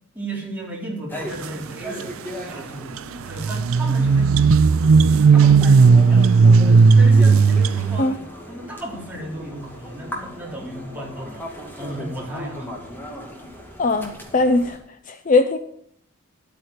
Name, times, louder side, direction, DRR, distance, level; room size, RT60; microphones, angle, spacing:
voice 1, 0.1-2.1 2.4-3.0 3.2-4.4 5.3-6.4 6.9-8.2 8.5-11.5 11.8-12.8, right 1 dB, 10° right, -4 dB, 3.8 m, -34 dB
sound 1, 1.1-14.8, equal, 10° left, 2.3 m, -37 dB
sound 2, 3.0-3.1 3.3-8.0, right 5 dB, 85° right, 0.4 m, -14 dB
voice 2, 13.8-14.8 15.1-15.6, left 3 dB, 40° left, 9 dB, 0.6 m, -19 dB
12.0 x 8.7 x 6.6 m, 0.68 s
head